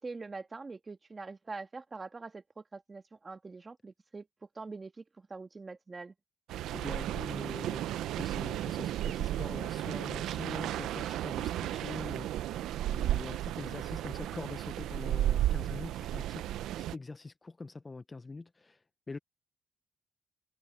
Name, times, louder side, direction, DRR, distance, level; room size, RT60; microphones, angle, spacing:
voice 1, 0.0-4.3 4.6-6.1, right 3 dB, 30° right, 1.8 m, -44 dB
sound 1, 6.5-16.9, right 13 dB, 85° right, 0.6 m, -34 dB
voice 2, 6.7-7.9 8.1-16.5 16.8-19.2, left 3 dB, 25° left, 0.6 m, -44 dB
cardioid pair, 90°, 0 cm